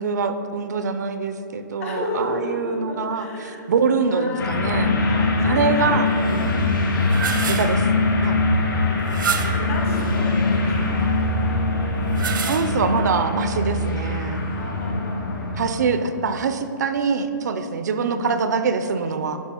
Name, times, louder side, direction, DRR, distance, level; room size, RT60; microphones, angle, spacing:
voice 1, 0.0-4.9 5.4-6.5 7.4-7.8 8.2-8.4 12.5-14.4 15.6-19.4, right 5 dB, 60° right, 9 dB, 0.5 m, -24 dB
voice 2, 1.8-3.7 4.1-6.0 6.3-7.9 9.2-11.3 14.5-16.0 17.9-18.4, left 2 dB, 45° left, 0 dB, 1.7 m, -34 dB
sound 1, 4.4-15.8, left 2 dB, 80° left, 1.7 m, -22 dB
sound 2, 6.9-7.8 9.1-9.7 12.0-13.0, right 6 dB, 85° right, 0.9 m, -28 dB
10.0 x 5.6 x 4.3 m, 2.9 s
hypercardioid pair, 175°, 11 cm